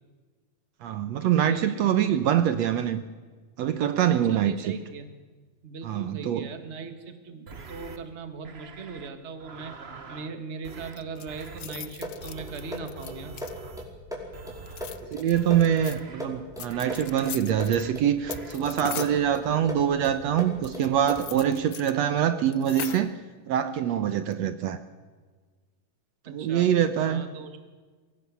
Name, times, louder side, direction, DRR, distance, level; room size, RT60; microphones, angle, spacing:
voice 1, 0.8-3.0 3.6-4.8 5.8-6.5 15.0-23.1 23.5-24.8 26.3-27.2, right 10 dB, 70° right, 10 dB, 2.1 m, -24 dB
voice 2, 1.3-2.2 4.1-5.1 5.6-9.8 10.1-13.4 26.3-26.7 27.0-27.5, right 4 dB, 25° right, 8 dB, 1.8 m, -39 dB
sound 1, 7.5-8.0 8.4-9.1 9.4-10.3 10.6-11.0 11.3-11.6 12.2-13.9 14.3-15.0 15.3-16.2 16.7-17.3 17.6-17.9 18.2-18.5, right 4 dB, 50° right, 0.7 m, -45 dB
sound 2, 10.9-13.8 14.6-16.0 16.6-17.8 18.3-19.2 20.6-21.9 22.2-22.3 22.5-23.2 24.1-24.4, left 11 dB, 80° left, 1.1 m, -40 dB
sound 3, 11.7-21.4, equal, ahead, 4.9 m, -39 dB
23.5 x 17.5 x 8.3 m, 1.4 s
omnidirectional pair, 3.3 m